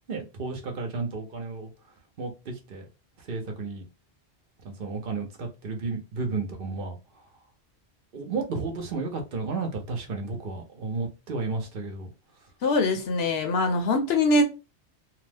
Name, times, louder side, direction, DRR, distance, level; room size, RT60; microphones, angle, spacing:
voice 1, 0.1-1.7 2.2-2.8 3.2-3.8 4.6-7.0 8.1-12.1, right 3 dB, 60° right, 0.8 m, -32 dB
voice 2, 12.6-14.4, left 2 dB, 70° left, 0.9 m, -23 dB
2.8 x 2.0 x 3.2 m
omnidirectional pair, 1.1 m